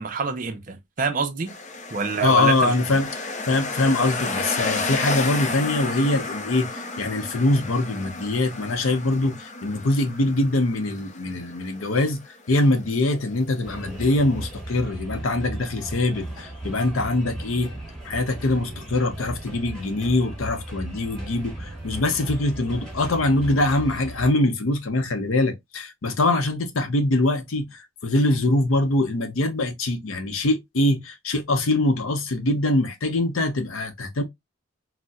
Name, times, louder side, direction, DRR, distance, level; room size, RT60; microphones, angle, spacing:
voice 1, 0.0-1.5 1.9-2.7, right 4 dB, 40° right, 0.5 m, -26 dB
sound 1, 1.5-14.6, left 3 dB, 35° left, 0.5 m, -32 dB
voice 2, 2.2-12.2 12.5-17.7 18.0-34.2, left 2 dB, 85° left, 0.7 m, -23 dB
sound 2, 13.6-24.3, right 1 dB, 5° left, 1.2 m, -36 dB
4.0 x 2.1 x 2.3 m
head